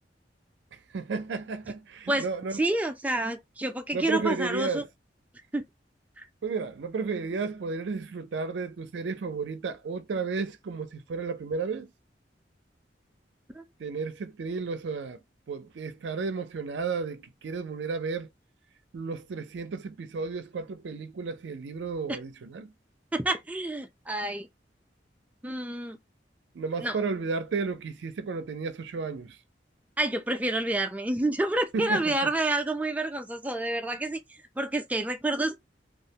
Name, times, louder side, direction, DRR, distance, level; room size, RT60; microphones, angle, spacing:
voice 1, 0.9-2.6 3.9-4.8 6.4-11.9 13.8-15.2 15.5-18.3 18.9-22.7 26.5-29.4 31.7-32.1, right 4 dB, 85° right, 0.4 m, -33 dB
voice 2, 2.1-4.8 5.5-5.6 6.2-6.3 13.5-13.6 22.1-22.2 23.1-24.5 25.4-26.0 26.8-27.0 30.0-34.2 34.6-35.6, right 2 dB, 10° right, 0.3 m, -28 dB
2.4 x 2.1 x 2.7 m
head